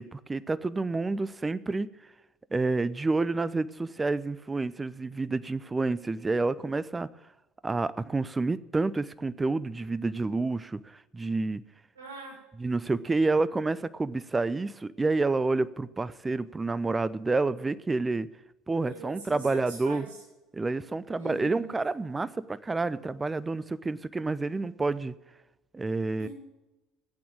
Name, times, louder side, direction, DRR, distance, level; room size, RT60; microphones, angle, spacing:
voice 1, 0.0-1.9 2.5-7.1 7.6-11.6 12.6-18.3 18.7-20.1 20.5-25.1 25.7-26.3, right 3 dB, 20° right, 0.7 m, -29 dB
voice 2, 11.9-12.4 18.8-20.2 21.1-21.7 26.2-26.3, right 3 dB, 80° right, 6.3 m, -43 dB
14.5 x 8.7 x 8.7 m
figure-of-eight pair, 60°, 0 cm